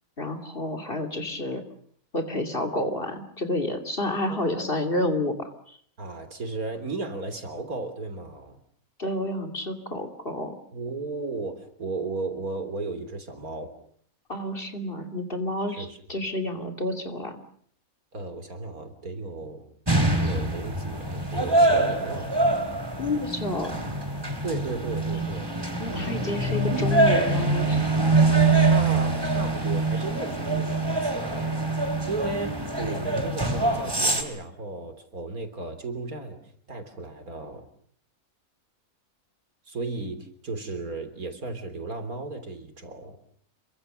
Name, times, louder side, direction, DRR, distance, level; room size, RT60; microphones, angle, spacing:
voice 1, 0.2-1.6 2.1-5.8 9.0-10.5 14.3-17.4 23.0-23.8 25.8-27.8, left 1 dB, 40° left, 5 dB, 2.9 m, -30 dB
voice 2, 4.3-4.8 6.0-8.6 10.7-13.7 15.7-16.0 18.1-19.6 20.1-22.3 24.4-25.5 25.9-26.8 28.6-36.4 36.7-37.7 39.7-43.2, right 3 dB, 85° right, 8 dB, 3.8 m, -35 dB
sound 1, 19.9-34.2, right 2 dB, 15° right, 3.2 m, -24 dB
28.0 x 23.5 x 6.8 m, 0.62 s
omnidirectional pair, 1.5 m